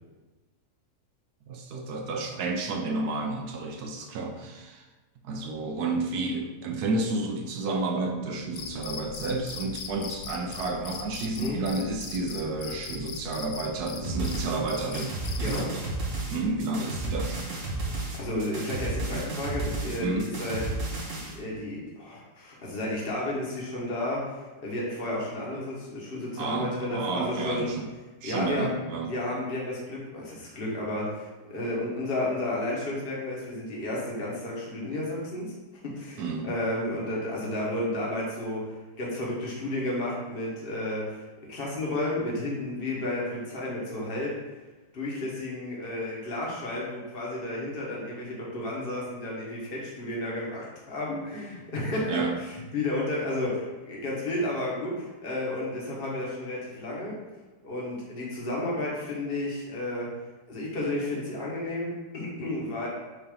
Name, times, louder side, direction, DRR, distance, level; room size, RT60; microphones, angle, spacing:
voice 1, 1.5-4.9 5.2-15.7 16.3-17.6 17.9-18.0 20.0-20.3 26.4-27.9 28.2-29.1 36.2-36.6 52.1-52.4, right 3 dB, 75° right, 3 dB, 1.1 m, -31 dB
Cricket, 8.5-15.7, left 5 dB, 90° left, 1.3 m, -40 dB
sound 1, 14.0-21.4, right 2 dB, 50° right, 1.5 m, -32 dB
voice 2, 15.4-15.9 17.8-20.6 21.3-27.7 28.2-28.7 29.0-35.5 35.9-44.4 44.9-52.2 52.7-57.2 57.6-60.1 60.5-62.9, left 1 dB, 35° left, -4 dB, 1.5 m, -32 dB
6.5 x 2.9 x 5.1 m, 1.2 s
omnidirectional pair, 1.8 m